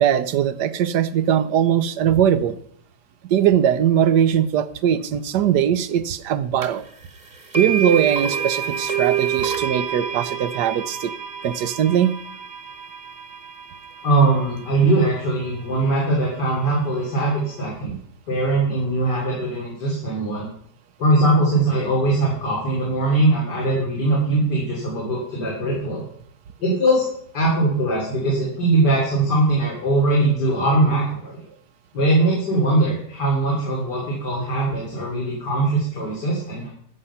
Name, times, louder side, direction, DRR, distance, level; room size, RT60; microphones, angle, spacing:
voice 1, 0.0-2.5 3.3-6.8 7.5-11.1 11.4-12.1, right 9 dB, 80° right, 13 dB, 1.4 m, -20 dB
sound 1, 6.6-6.7 7.5-15.6, right 8 dB, 30° right, 1.2 m, -28 dB
voice 2, 14.0-17.9 18.3-20.5 21.0-26.0 26.6-27.1 27.3-31.4 31.9-36.7, right 2 dB, 85° left, -4 dB, 3.7 m, -21 dB
14.0 x 7.7 x 5.7 m, 0.65 s
omnidirectional pair, 1.8 m